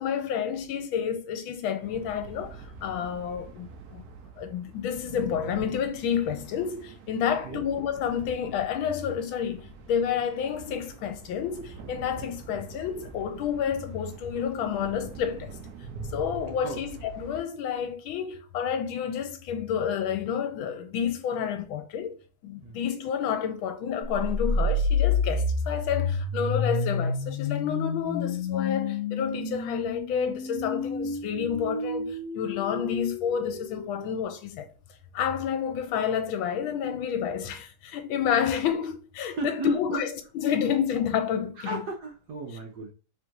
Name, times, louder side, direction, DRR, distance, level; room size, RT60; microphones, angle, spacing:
voice 1, 0.0-4.0 4.4-15.5 16.1-22.2 22.4-34.7 35.1-41.8, left 8 dB, 80° left, 1.4 m, -29 dB
sound 1, 1.8-17.4, right 4 dB, 80° right, 0.8 m, -44 dB
voice 2, 7.3-7.6 8.1-8.3 12.1-12.3 16.6-16.8 22.6-22.8 39.3-40.0 41.6-42.9, right 3 dB, 65° right, 1.1 m, -36 dB
sound 2, 24.1-34.0, left 3 dB, 60° left, 1.1 m, -29 dB
3.5 x 2.5 x 4.5 m
omnidirectional pair, 2.2 m